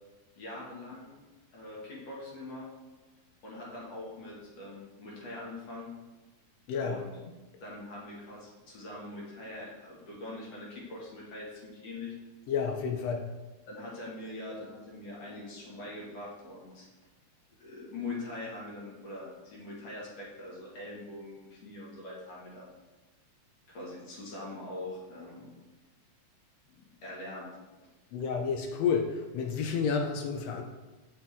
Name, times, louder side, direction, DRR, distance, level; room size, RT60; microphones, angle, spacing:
voice 1, 0.4-1.1 1.5-2.7 3.4-5.9 6.8-7.1 7.6-12.1 13.7-16.9 17.6-22.7 23.7-25.6 26.7-27.5 27.8-27.9, left 2 dB, 55° left, -5 dB, 2.8 m, -43 dB
voice 2, 12.5-13.3 28.1-30.6, left 6 dB, 75° left, 3 dB, 1.5 m, -30 dB
8.0 x 7.0 x 3.5 m, 1.2 s
omnidirectional pair, 3.6 m